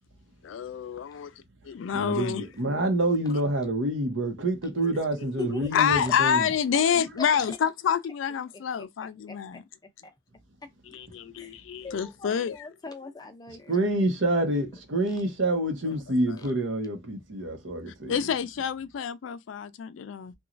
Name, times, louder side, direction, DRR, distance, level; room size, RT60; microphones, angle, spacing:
voice 1, 0.4-1.3 1.6-2.5 4.8-4.9 5.2-5.3 5.7-9.6 10.9-12.7 16.3-16.4 18.1-20.3, left 7 dB, 80° left, 0.3 m, -28 dB
voice 2, 1.9-6.5 13.7-18.1, right 1 dB, 80° right, 0.8 m, -27 dB
voice 3, 5.4-5.8 7.5-7.6 8.8-8.9 9.3-9.6 10.9-11.0 11.4-11.6 11.8-13.9, left 4 dB, 20° left, 0.5 m, -40 dB
3.0 x 2.3 x 2.5 m
head